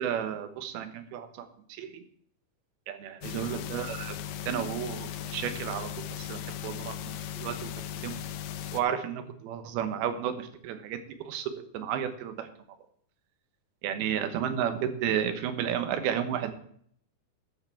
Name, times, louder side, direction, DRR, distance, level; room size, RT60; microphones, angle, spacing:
voice 1, 0.0-2.0 2.9-4.1 4.5-5.9 6.2-8.2 8.7-11.0 11.3-12.5 13.8-16.5, right 9 dB, 75° right, 9 dB, 2.9 m, -32 dB
sound 1, 3.2-8.8, left 9 dB, 80° left, 2.6 m, -37 dB
13.0 x 10.0 x 3.6 m, 0.63 s
omnidirectional pair, 4.6 m